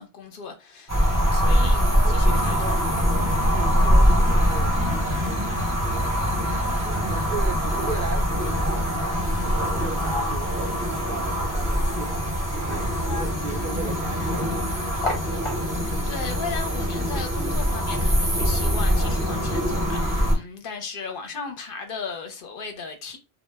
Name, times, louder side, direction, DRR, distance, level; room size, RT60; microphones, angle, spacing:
voice 1, 0.0-2.8 15.7-23.2, left 5 dB, 65° left, 0.7 m, -36 dB
sound 1, 0.9-20.3, equal, 20° right, 0.6 m, -23 dB
voice 2, 1.4-2.8 3.4-5.3 6.8-9.0 9.4-10.7 11.1-12.9 13.1-14.6 15.1-15.2, right 5 dB, 60° right, 0.6 m, -37 dB
sound 2, 7.6-16.0, left 3 dB, 35° left, 0.8 m, -38 dB
2.1 x 2.0 x 3.3 m
omnidirectional pair, 1.0 m